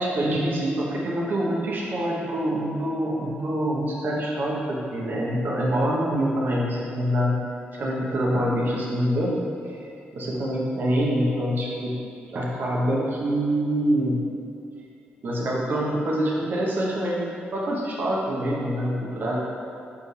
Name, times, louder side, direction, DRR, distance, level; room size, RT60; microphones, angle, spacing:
voice 1, 0.0-7.4 7.7-12.0 12.3-14.2 15.2-19.4, equal, 55° right, -3 dB, 1.1 m, -25 dB
5.9 x 4.7 x 3.3 m, 2.5 s
wide cardioid pair, 125°, 4 cm